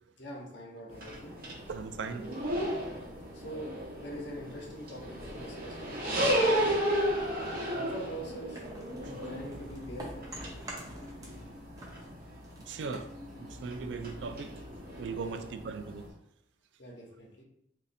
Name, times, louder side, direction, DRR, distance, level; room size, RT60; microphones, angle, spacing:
voice 1, 0.2-1.4 3.3-3.7 3.9-6.6 7.7-8.6 9.2-10.5 15.2-15.4 16.8-17.4, right 1 dB, 75° left, -2 dB, 1.0 m, -44 dB
sound 1, 0.9-16.1, equal, 50° right, 0.9 m, -35 dB
voice 2, 1.7-2.2 11.2-11.4 12.7-13.1 13.4-14.5 15.0-16.0, right 4 dB, 75° right, 9 dB, 0.3 m, -38 dB
sound 2, 8.5-11.5 11.7-14.1, right 1 dB, 20° right, 0.7 m, -47 dB
sound 3, 9.0-15.1, left 1 dB, ahead, 1.3 m, -49 dB
3.1 x 2.6 x 4.1 m, 0.76 s
head